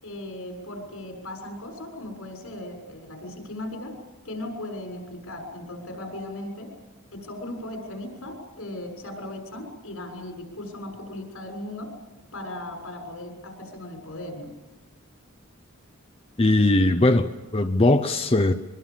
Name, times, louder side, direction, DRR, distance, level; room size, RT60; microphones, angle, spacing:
voice 1, 0.0-3.9 4.2-6.7 7.1-11.9 12.3-14.5, left 1 dB, 90° left, 6.7 m, -37 dB
voice 2, 16.4-18.5, left 2 dB, 25° left, 0.8 m, -20 dB
23.5 x 23.0 x 7.4 m
head